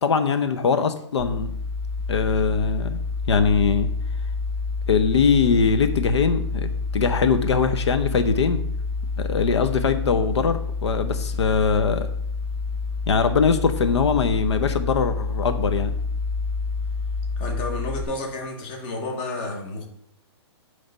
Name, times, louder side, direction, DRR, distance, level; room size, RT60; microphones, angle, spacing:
voice 1, 0.0-1.5 2.1-3.0 3.3-3.9 4.9-8.6 9.2-12.1 13.1-15.9, left 5 dB, 75° left, 9 dB, 0.7 m, -21 dB
sound 1, 1.2-18.0, left 4 dB, 55° left, 2.0 m, -28 dB
voice 2, 17.4-19.9, left 2 dB, 20° left, 2 dB, 1.0 m, -31 dB
8.9 x 3.4 x 5.4 m, 0.70 s
hypercardioid pair, 180°, 15 cm